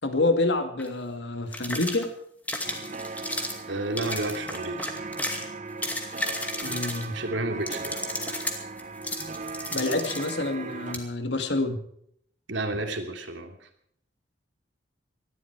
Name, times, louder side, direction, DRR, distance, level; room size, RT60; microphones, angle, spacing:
voice 1, 0.0-2.1 6.6-7.2 9.7-11.8, left 2 dB, 70° left, 7 dB, 2.3 m, -27 dB
sound 1, 0.8-0.9 1.5-2.1 2.5-3.6 4.0-5.4 5.7-7.2 7.7-10.3 10.9-11.0, left 1 dB, 10° left, 2.3 m, -33 dB
sound 2, 2.6-10.9, right 3 dB, 40° right, 1.1 m, -38 dB
voice 2, 3.7-4.9 7.1-8.0 12.5-13.5, right 2 dB, 85° right, 6 dB, 2.9 m, -31 dB
19.5 x 14.0 x 4.7 m, 0.68 s
head